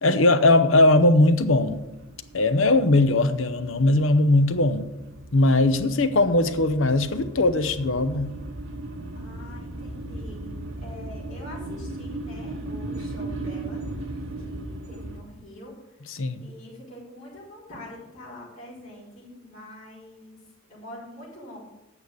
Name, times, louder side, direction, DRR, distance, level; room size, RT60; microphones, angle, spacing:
voice 1, 0.0-1.8 2.3-4.8 5.3-8.3 16.1-16.4, left 2 dB, 65° left, 0.9 m, -20 dB
sound 1, 1.0-15.2, right 2 dB, 75° right, 1.3 m, -37 dB
voice 2, 9.1-10.5 10.8-15.7 16.0-16.1 16.4-20.4 20.7-21.6, left 1 dB, 40° left, 4.7 m, -44 dB
9.0 x 6.6 x 8.3 m
head